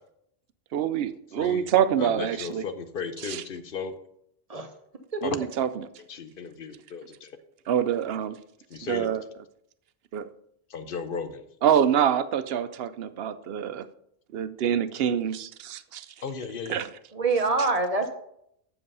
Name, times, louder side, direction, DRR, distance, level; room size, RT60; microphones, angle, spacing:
voice 1, 0.7-2.6 3.2-3.4 5.2-5.9 7.7-8.4 8.9-9.2 10.1-10.3 11.6-13.9 14.3-16.1 16.7-16.9, right 9 dB, 70° right, 13 dB, 0.8 m, -26 dB
voice 2, 1.4-1.7 2.0-3.9 5.2-5.4 6.1-7.4 8.7-9.1 10.7-11.4 16.2-16.8, left 5 dB, 60° left, 10 dB, 0.9 m, -35 dB
voice 3, 5.1-5.5 17.1-18.2, right 3 dB, 40° right, 7 dB, 0.9 m, -26 dB
7.6 x 6.9 x 5.4 m, 0.75 s
omnidirectional pair, 1.1 m